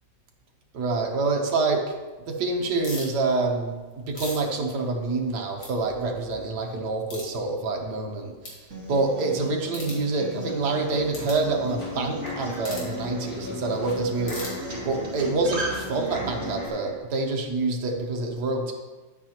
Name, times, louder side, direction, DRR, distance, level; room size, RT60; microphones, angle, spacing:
voice 1, 0.7-1.8 2.3-3.7 4.1-8.3 8.9-18.7, right 3 dB, 65° right, 1 dB, 1.6 m, -27 dB
sound 1, 2.8-3.1 3.8-5.3 5.6-5.7 6.2-6.3 7.1-7.3 7.9-8.0 8.4-8.6 9.7-10.0 11.1-11.4 12.6-12.9 14.2-15.0, left 2 dB, 80° left, 3.0 m, -39 dB
Acoustic guitar, 8.7-16.7, equal, 45° right, 2.7 m, -36 dB
sound 2, 10.6-17.0, equal, 30° left, 1.8 m, -40 dB
9.7 x 8.8 x 2.9 m, 1.2 s
omnidirectional pair, 2.0 m